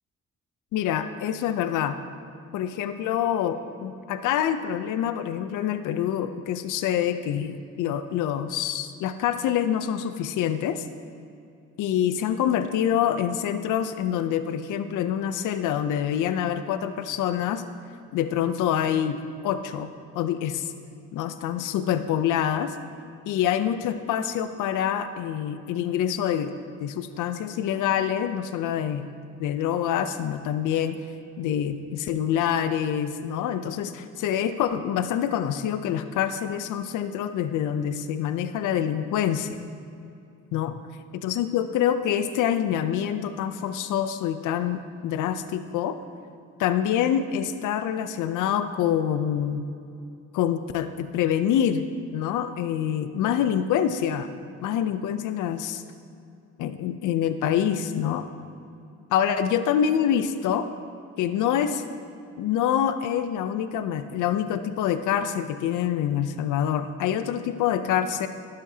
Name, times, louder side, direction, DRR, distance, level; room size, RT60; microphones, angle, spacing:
voice 1, 0.7-2.0 2.5-10.8 11.8-17.6 18.1-19.2 19.4-19.9 20.2-20.7 21.1-22.8 23.3-26.5 26.8-29.1 29.4-31.0 31.4-39.6 40.5-40.7 41.2-46.0 46.6-49.6 50.3-51.8 52.1-54.3 54.6-55.8 56.6-58.3 59.1-60.7 61.2-61.8 62.4-68.3, left 9 dB, 80° left, 10 dB, 0.6 m, -26 dB
12.0 x 11.5 x 2.8 m, 2.5 s
cardioid pair, 90°, 30 cm